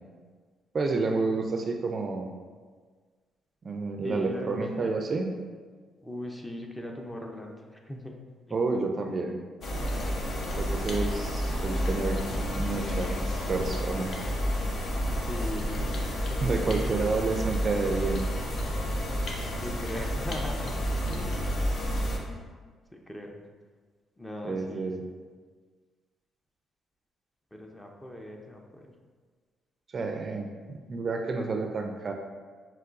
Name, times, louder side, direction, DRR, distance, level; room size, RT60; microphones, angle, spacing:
voice 1, 0.7-2.3 3.6-5.3 8.5-9.4 10.5-12.2 12.6-14.1 16.4-18.2 24.4-25.0 29.9-32.1, right 3 dB, 40° right, 3 dB, 0.4 m, -30 dB
voice 2, 4.0-4.9 6.0-8.1 8.5-8.6 15.2-17.0 19.6-20.8 21.1-21.3 22.2-22.4 22.9-23.4 24.2-24.9 27.5-28.9, left 1 dB, 10° left, 1 dB, 0.5 m, -40 dB
sound 1, 9.6-22.2, equal, 55° left, 0.7 m, -30 dB
5.7 x 3.0 x 2.5 m, 1.5 s
cardioid pair, 90°, 0 cm